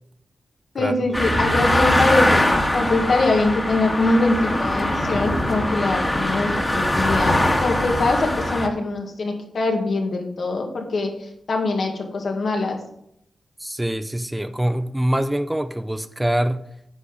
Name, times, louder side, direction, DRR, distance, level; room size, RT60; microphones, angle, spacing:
voice 1, 0.7-12.8, left 2 dB, 65° left, 2 dB, 2.0 m, -23 dB
sound 1, 1.1-8.7, left 1 dB, 15° left, 1.8 m, -21 dB
voice 2, 13.6-16.7, right 1 dB, 10° right, 10 dB, 0.5 m, -24 dB
10.0 x 6.7 x 5.2 m, 0.74 s
wide cardioid pair, 90°, 0 cm